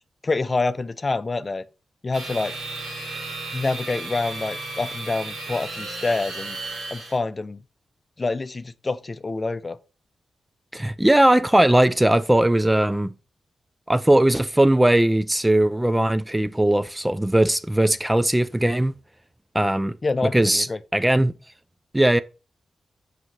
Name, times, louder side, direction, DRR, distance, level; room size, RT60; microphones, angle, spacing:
voice 1, 0.2-1.6 2.0-2.6 3.5-6.6 6.9-7.6 8.2-9.8 20.0-20.8, left 3 dB, 35° left, 0.6 m, -26 dB
sound 1, 2.1-7.2, right 3 dB, 90° right, 3.0 m, -34 dB
voice 2, 10.7-13.1 13.9-18.9 19.5-20.0 20.3-20.7 20.9-21.3 21.9-22.2, right 1 dB, 10° right, 0.4 m, -19 dB
6.3 x 5.1 x 4.2 m
cardioid pair, 75°, 0 cm